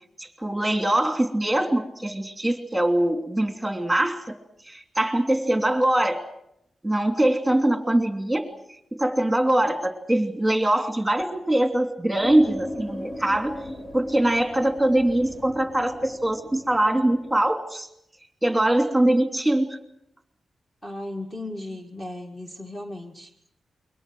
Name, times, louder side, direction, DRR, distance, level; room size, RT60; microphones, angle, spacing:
voice 1, 0.2-4.2 4.7-6.2 6.8-8.5 9.0-13.6 13.9-17.9 18.4-19.7, right 1 dB, 5° right, 5 dB, 2.9 m, -22 dB
sound 1, 12.2-17.3, left 1 dB, 60° left, 4.0 m, -38 dB
voice 2, 20.8-23.3, left 1 dB, 20° left, 2 dB, 2.0 m, -36 dB
28.5 x 23.5 x 6.2 m, 0.76 s
wide cardioid pair, 150°, 0 cm